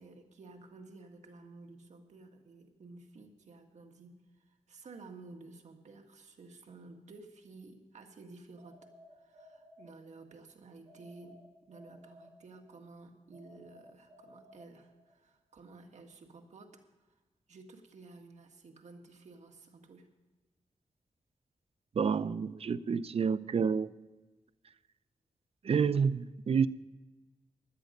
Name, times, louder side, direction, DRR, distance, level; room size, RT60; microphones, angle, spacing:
voice 1, 0.0-8.9 9.2-16.8 17.5-20.1, right 3 dB, 75° right, 4 dB, 1.8 m, -53 dB
sound 1, 8.6-10.3 10.9-12.8 13.3-15.2, equal, 40° right, 5.8 m, -58 dB
voice 2, 22.0-23.9 25.6-26.7, right 6 dB, 55° right, 15 dB, 0.5 m, -29 dB
16.5 x 11.5 x 5.2 m, 1.2 s
cardioid pair, 80°, 12 cm